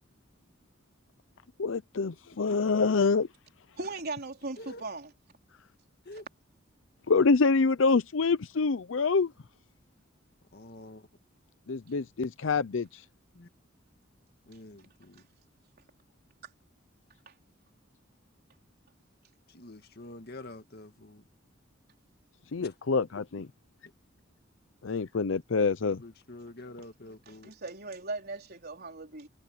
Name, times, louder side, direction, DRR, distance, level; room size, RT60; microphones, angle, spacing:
voice 1, 1.6-3.3 7.1-9.3 11.7-13.0 22.5-23.5 24.8-26.0, left 4 dB, 75° left, 0.6 m, -26 dB
voice 2, 3.8-5.1 16.4-16.5 17.3-17.4 27.3-29.3, right 3 dB, 55° right, 4.2 m, -38 dB
voice 3, 10.5-11.1 13.3-13.5 14.5-15.3 19.5-21.2 22.6-22.8 25.9-27.5, left 1 dB, 55° left, 1.9 m, -47 dB
head